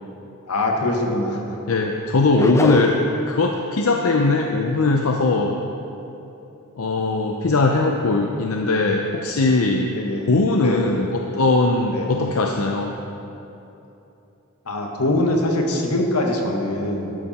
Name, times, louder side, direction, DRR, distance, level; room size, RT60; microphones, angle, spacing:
voice 1, 0.5-1.4 10.0-10.2 10.6-10.8 11.9-12.1 14.6-17.2, left 1 dB, 90° left, 1 dB, 1.6 m, -23 dB
voice 2, 1.7-3.0 3.3-5.6 6.8-9.9 10.3-12.9, left 3 dB, 70° left, 2 dB, 0.7 m, -20 dB
sound 1, 2.4-3.3, left 1 dB, 15° left, 0.4 m, -24 dB
12.5 x 11.0 x 4.3 m, 3.0 s
head